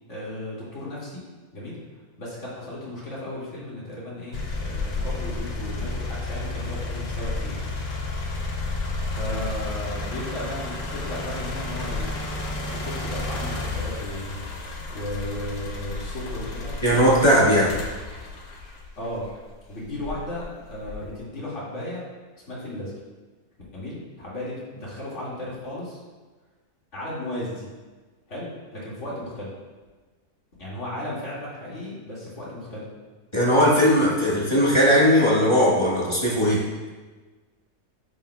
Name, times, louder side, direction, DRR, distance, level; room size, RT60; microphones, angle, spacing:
voice 1, 0.1-1.2 1.5-1.8 2.2-7.8 9.2-12.3 12.7-14.4 14.9-16.7 17.5-17.7 19.0-19.3 19.7-22.1 22.5-22.9 23.7-26.0 26.9-27.7 28.3-29.5 30.6-32.9, left 1 dB, 50° left, -7 dB, 2.4 m, -35 dB
sound 1, 4.3-19.4 20.0-21.2, left 2 dB, 70° left, 1.5 m, -31 dB
voice 2, 16.8-17.7 33.3-36.7, equal, 20° left, -6 dB, 1.3 m, -18 dB
11.0 x 5.5 x 2.3 m, 1.3 s
omnidirectional pair, 1.6 m